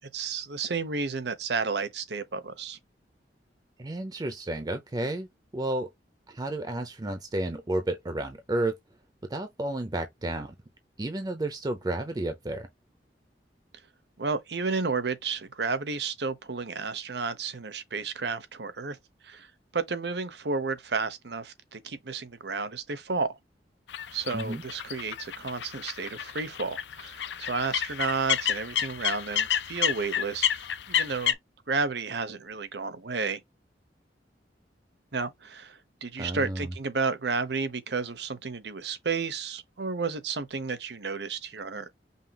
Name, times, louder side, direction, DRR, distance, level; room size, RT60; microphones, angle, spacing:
voice 1, 0.1-2.8 14.2-19.0 19.2-19.5 19.7-23.4 24.1-31.4 31.7-33.4 35.1-41.9, right 4 dB, 70° right, 0.9 m, -32 dB
voice 2, 3.8-5.3 5.5-5.9 6.3-8.7 9.3-10.5 11.0-12.7 24.3-24.6 36.2-36.7, right 1 dB, 25° right, 0.5 m, -31 dB
sound 1, 23.9-31.3, left 10 dB, 85° left, 0.6 m, -30 dB
5.6 x 2.3 x 2.9 m
head